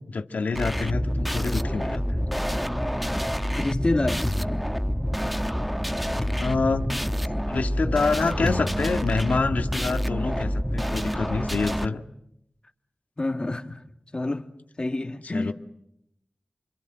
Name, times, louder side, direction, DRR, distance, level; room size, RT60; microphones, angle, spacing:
voice 1, 0.1-2.2 6.3-6.8 7.5-12.0 15.2-15.5, left 4 dB, 90° left, 1.7 m, -27 dB
sound 1, 0.5-11.9, equal, ahead, 1.1 m, -27 dB
voice 2, 3.6-4.3 13.2-13.8 14.1-14.5 14.8-15.5, left 2 dB, 35° left, 2.2 m, -27 dB
Thump thud, 4.2-4.8 6.2-6.6 8.4-9.1, left 1 dB, 20° left, 2.7 m, -32 dB
28.0 x 26.0 x 7.8 m
wide cardioid pair, 65°, 3 cm